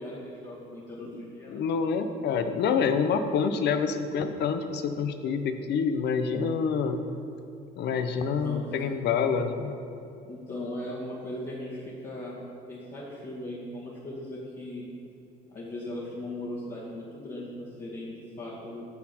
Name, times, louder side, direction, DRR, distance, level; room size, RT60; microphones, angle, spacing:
voice 1, 0.0-1.6 8.1-9.0 10.2-12.4 12.7-14.9 15.5-18.9, left 1 dB, 45° left, -9 dB, 2.1 m, -38 dB
voice 2, 1.5-7.1 7.8-9.8, left 6 dB, 60° left, 9 dB, 0.7 m, -27 dB
9.9 x 6.6 x 4.3 m, 2.7 s
supercardioid pair, 90°, 19 cm